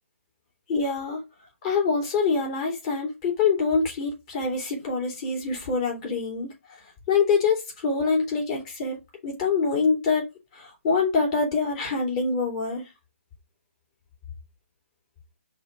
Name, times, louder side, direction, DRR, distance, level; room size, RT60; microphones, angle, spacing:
voice 1, 0.7-1.2 1.6-6.5 7.1-9.0 9.2-10.3 10.5-12.8, left 4 dB, 30° left, 3.1 m, -25 dB
5.4 x 4.0 x 4.8 m
hypercardioid pair, 155°, 7 cm